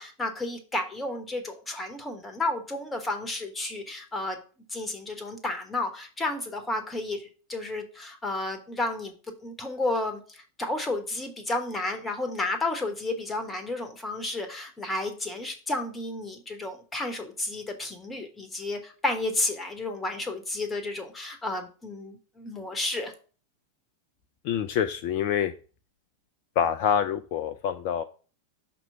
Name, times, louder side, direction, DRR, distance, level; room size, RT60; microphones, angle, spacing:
voice 1, 0.0-4.4 4.7-23.1, left 2 dB, 15° left, 6 dB, 1.1 m, -32 dB
voice 2, 24.4-25.5 26.6-28.0, left 8 dB, 45° left, 8 dB, 0.4 m, -26 dB
5.9 x 3.0 x 5.7 m, 0.38 s
figure-of-eight pair, 90°, 0 cm